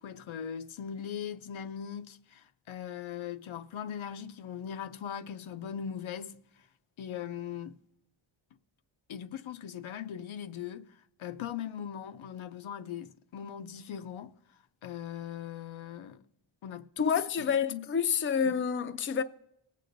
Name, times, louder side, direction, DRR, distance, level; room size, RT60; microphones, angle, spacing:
voice 1, 0.0-6.7 7.0-7.8 9.1-14.3 14.8-16.2 16.6-17.9 18.4-18.5, left 8 dB, 70° left, 0.6 m, -40 dB
voice 2, 17.0-19.2, left 7 dB, 25° left, 0.5 m, -28 dB
19.5 x 8.4 x 2.6 m
wide cardioid pair, 115°, 49 cm